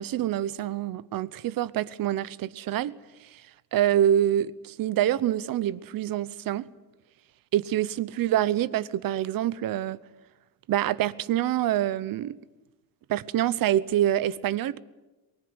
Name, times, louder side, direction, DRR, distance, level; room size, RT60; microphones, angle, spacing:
voice 1, 0.0-3.0 3.3-3.4 3.7-6.7 7.5-10.0 10.7-12.4 13.1-14.8, right 12 dB, 65° right, 0.9 m, -26 dB
24.0 x 20.5 x 9.7 m
cardioid pair, 165°, 37 cm